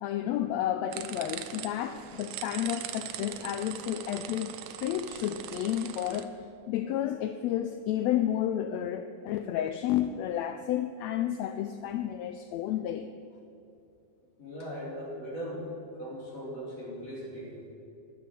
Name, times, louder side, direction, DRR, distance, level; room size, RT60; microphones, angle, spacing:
voice 1, 0.0-6.4 6.7-13.1, left 11 dB, 85° left, 9 dB, 1.5 m, -31 dB
sound 1, 0.9-6.2, right 11 dB, 75° right, 1.6 m, -41 dB
voice 2, 14.4-15.7 16.0-17.7, equal, 55° left, -6 dB, 5.2 m, -39 dB
12.0 x 10.5 x 7.5 m, 2.7 s
omnidirectional pair, 3.5 m